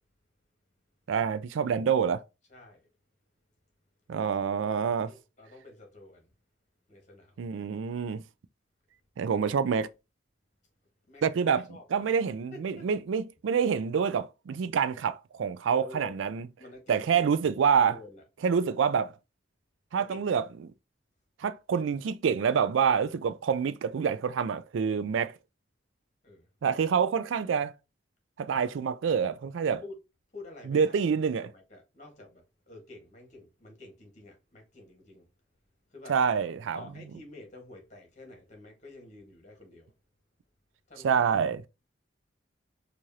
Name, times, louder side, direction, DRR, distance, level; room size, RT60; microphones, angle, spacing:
voice 1, 1.1-2.2 4.1-5.1 7.4-8.2 9.2-9.9 11.2-11.6 11.9-16.5 16.9-18.0 18.4-19.1 19.9-20.7 21.4-25.3 26.6-27.7 28.4-29.8 30.7-31.5 36.1-36.8 41.0-41.7, right 6 dB, 80° right, 0.3 m, -27 dB
voice 2, 2.5-2.9 5.0-6.3 6.9-7.4 9.3-9.5 11.1-11.2 11.5-12.1 12.5-12.9 15.7-16.2 16.6-17.3 17.9-18.2 20.0-20.2 24.9-25.0 26.2-26.5 29.8-30.0 30.3-31.0 31.4-35.3 35.9-36.2 36.7-39.9 40.9-41.4, left 2 dB, 40° left, 1.4 m, -49 dB
4.7 x 2.5 x 2.7 m
head